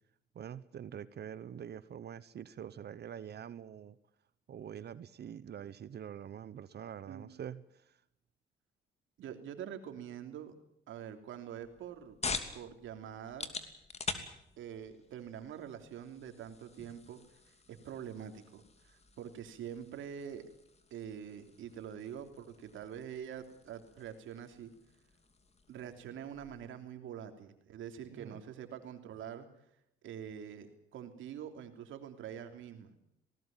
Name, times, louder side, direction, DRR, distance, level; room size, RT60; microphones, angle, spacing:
voice 1, 0.3-4.0 4.5-8.0 28.1-28.4, right 9 dB, 55° right, 16 dB, 1.0 m, -45 dB
voice 2, 9.2-10.5 10.9-12.2 12.5-13.5 14.6-17.2 17.5-20.4 20.9-24.7 25.7-29.5 30.0-32.9, right 9 dB, 80° right, 7 dB, 3.2 m, -45 dB
sound 1, 11.6-26.7, left 4 dB, 30° left, 2.9 m, -46 dB
19.5 x 19.0 x 9.0 m, 0.77 s
cardioid pair, 90°, 20 cm